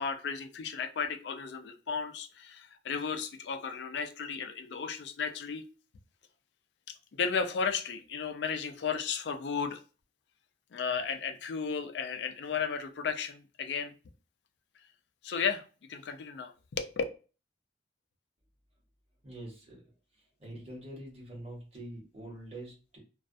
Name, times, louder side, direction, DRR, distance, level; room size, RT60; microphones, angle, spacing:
voice 1, 0.0-5.7 6.9-9.8 10.7-13.9 15.2-15.6 15.9-17.0, left 6 dB, 70° left, 0.4 m, -34 dB
voice 2, 19.2-19.8 20.4-23.0, right 1 dB, 35° right, 1.0 m, -45 dB
2.3 x 2.1 x 2.5 m
head